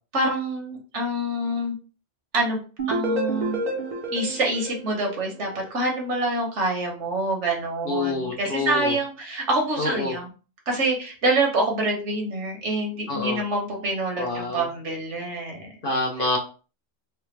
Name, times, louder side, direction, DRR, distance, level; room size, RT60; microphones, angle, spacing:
voice 1, 0.1-1.7 2.3-2.6 2.9-3.6 4.1-10.3 10.7-15.7 16.2-16.3, right 2 dB, 65° right, 1 dB, 1.3 m, -26 dB
sound 1, 2.8-5.7, right 1 dB, 45° right, 0.7 m, -30 dB
voice 2, 7.8-8.9 9.8-10.1 13.1-13.4 14.2-14.7 15.8-16.4, left 3 dB, 50° left, 0 dB, 0.9 m, -26 dB
3.2 x 2.2 x 3.2 m, 0.36 s
omnidirectional pair, 1.3 m